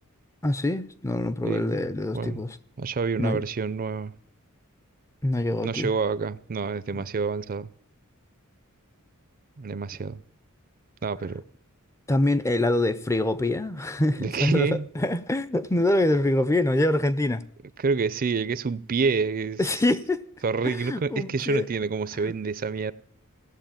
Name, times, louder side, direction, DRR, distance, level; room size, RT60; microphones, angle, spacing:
voice 1, 0.4-2.6 3.2-3.4 5.2-5.9 6.9-7.0 12.1-17.4 19.6-20.2 20.6-21.7 22.2-22.3, left 1 dB, 15° left, 0.5 m, -25 dB
voice 2, 2.8-4.1 5.6-7.7 9.6-10.2 11.0-11.4 14.2-14.9 17.8-19.6 20.4-22.9, right 4 dB, 40° right, 0.5 m, -27 dB
16.5 x 7.5 x 8.9 m
head